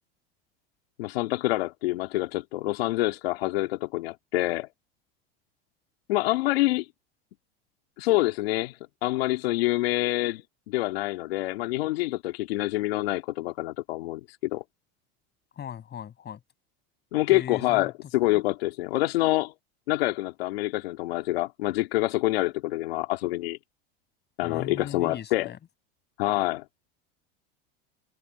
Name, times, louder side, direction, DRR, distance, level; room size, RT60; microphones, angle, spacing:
voice 1, 1.0-4.7 6.1-6.9 8.0-14.6 17.1-19.5 19.9-23.6 24.4-25.5 26.2-26.6, left 18 dB, 80° left, 2.8 m, -26 dB
voice 2, 15.6-16.4 17.3-17.9 24.4-25.6, left 9 dB, 35° left, 6.1 m, -38 dB
hypercardioid pair, 95°, 30 cm